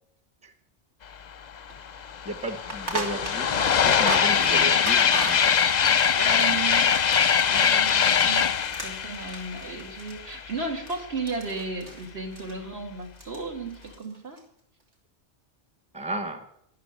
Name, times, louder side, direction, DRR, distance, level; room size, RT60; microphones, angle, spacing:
sound 1, 1.6-1.7 1.9-10.5, left 7 dB, 45° left, 0.7 m, -22 dB
sound 2, 1.7-1.8 2.0-2.1 2.5-8.2 8.5-11.0 11.3-12.1 12.3-12.5 13.0-13.4 13.7-14.4, right 2 dB, 80° right, 3.2 m, -37 dB
voice 1, 2.2-5.6 15.9-16.5, equal, 5° right, 8 dB, 1.1 m, -34 dB
voice 2, 6.1-7.0 7.5-8.5 8.8-14.4, right 3 dB, 65° right, 2 dB, 2.8 m, -34 dB
13.5 x 12.0 x 6.6 m, 0.71 s
omnidirectional pair, 1.2 m